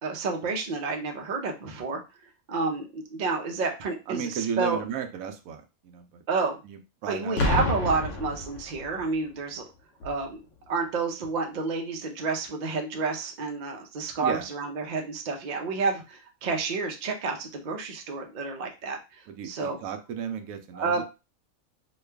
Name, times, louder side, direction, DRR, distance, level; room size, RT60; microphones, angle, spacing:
voice 1, 0.0-2.0 2.5-4.8 6.3-6.6 7.1-9.7 10.0-19.8 20.7-21.0, right 4 dB, 50° right, 3 dB, 0.6 m, -30 dB
voice 2, 4.1-6.2 6.6-7.4 14.2-14.4 19.3-21.0, right 7 dB, 85° right, 6 dB, 1.0 m, -34 dB
Boom, 7.4-9.1 10.0-10.3, left 2 dB, 65° left, 1.0 m, -28 dB
3.1 x 2.3 x 3.3 m, 0.28 s
omnidirectional pair, 1.4 m